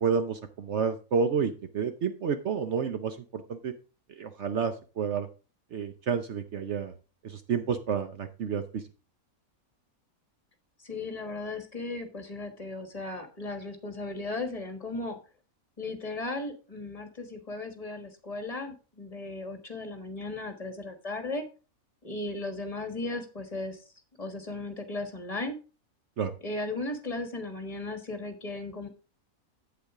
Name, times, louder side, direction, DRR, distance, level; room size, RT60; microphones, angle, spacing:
voice 1, 0.0-3.7 4.2-5.3 5.7-6.9 7.2-8.8 26.2-26.3, right 6 dB, 60° right, 8 dB, 1.0 m, -30 dB
voice 2, 10.8-15.2 15.8-21.4 22.0-23.8 24.2-25.6 26.4-28.9, left 2 dB, 25° left, 6 dB, 1.5 m, -36 dB
8.4 x 8.1 x 3.6 m, 0.33 s
omnidirectional pair, 1.5 m